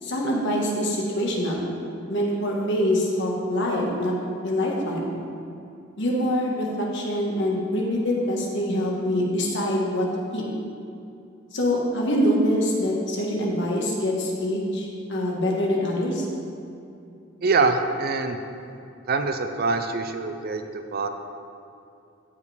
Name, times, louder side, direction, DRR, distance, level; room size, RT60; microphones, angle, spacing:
voice 1, 0.0-1.6 2.1-4.1 4.4-5.2 6.0-10.1 10.3-10.4 11.5-16.3, equal, 60° left, -2 dB, 1.5 m, -24 dB
voice 2, 17.4-18.4 19.1-21.1, right 3 dB, 50° right, 7 dB, 0.5 m, -24 dB
15.0 x 5.3 x 3.4 m, 2.6 s
head